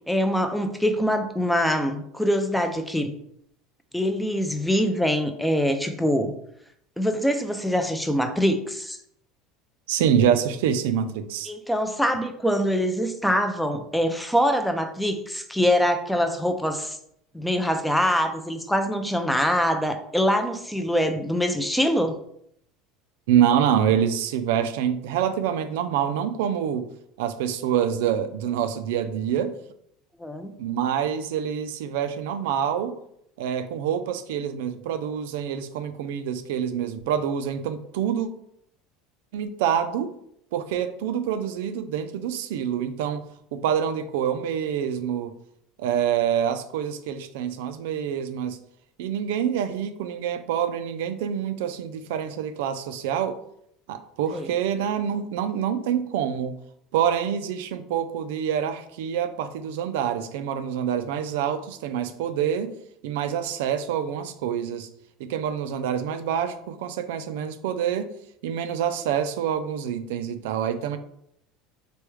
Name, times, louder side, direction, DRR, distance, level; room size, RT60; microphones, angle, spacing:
voice 1, 0.1-3.1 3.9-6.3 7.0-9.0 11.5-17.0 17.3-22.1 30.2-30.5 54.3-54.5, equal, ahead, 7 dB, 0.3 m, -24 dB
voice 2, 9.9-11.5 23.3-26.9 27.2-29.5 30.6-32.9 33.4-38.3 39.3-40.1 40.5-45.3 45.8-48.6 49.0-53.4 53.9-56.6 56.9-62.7 63.0-64.9 65.2-68.1 68.4-71.0, right 9 dB, 85° right, 9 dB, 0.3 m, -26 dB
3.3 x 2.2 x 3.1 m, 0.72 s
supercardioid pair, 125°, 0 cm